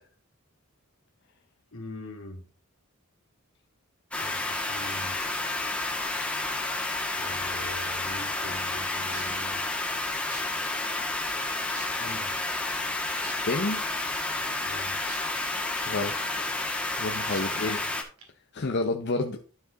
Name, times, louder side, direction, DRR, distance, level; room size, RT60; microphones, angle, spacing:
voice 1, 1.7-2.5 4.2-5.2 7.2-9.6 12.0-12.4 14.6-15.0 17.4-17.9, left 2 dB, 75° left, 2 dB, 2.4 m, -42 dB
sound 1, 4.1-18.0, left 2 dB, 5° left, 1.5 m, -30 dB
sound 2, 9.1-9.4 10.3-10.4 11.2-11.3 11.7-12.1 13.2-13.3 15.1-15.2 15.7-15.8 17.3-17.4 18.2-18.3, right 5 dB, 80° right, 2.7 m, -42 dB
voice 2, 13.5-13.9 15.8-16.6 17.0-17.8 18.5-19.4, left 2 dB, 55° left, 4 dB, 0.7 m, -30 dB
12.0 x 4.7 x 3.9 m, 0.37 s
head